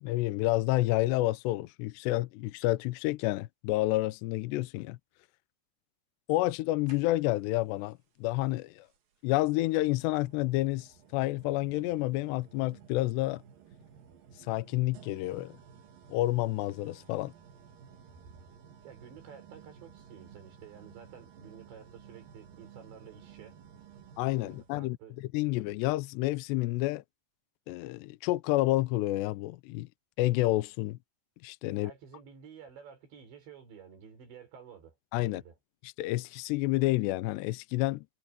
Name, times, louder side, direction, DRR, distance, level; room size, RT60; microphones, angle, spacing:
voice 1, 0.0-5.0 6.3-8.8 9.2-13.4 14.5-15.6 16.1-17.3 24.2-25.0 25.3-27.0 27.7-29.9 30.2-31.0 31.4-31.9 35.1-35.4 36.0-38.0, left 18 dB, 80° left, 2.7 m, -29 dB
sound 1, 6.9-7.5 8.9-9.0 9.7-24.7, right 7 dB, 55° right, 3.3 m, -54 dB
voice 2, 18.8-23.6 24.4-25.2 31.7-35.0 35.2-35.6, right 7 dB, 75° right, 7.6 m, -51 dB
omnidirectional pair, 5.2 m